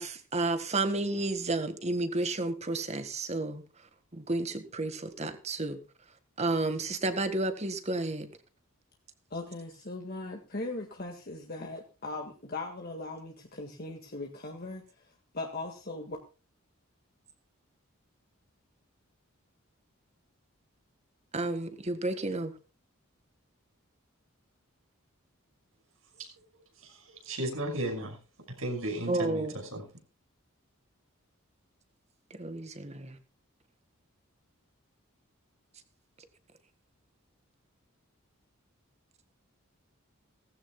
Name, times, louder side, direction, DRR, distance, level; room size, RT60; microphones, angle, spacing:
voice 1, 0.0-3.6 4.1-5.8 6.4-8.3 21.3-22.5 29.1-29.5 32.4-33.1, right 2 dB, 30° right, 1.7 m, -31 dB
voice 2, 9.3-14.8 15.3-16.2, left 2 dB, 45° left, 1.8 m, -39 dB
voice 3, 27.2-28.2 28.6-29.5 29.7-29.8, right 1 dB, 75° right, 5.9 m, -34 dB
18.0 x 15.0 x 2.3 m
head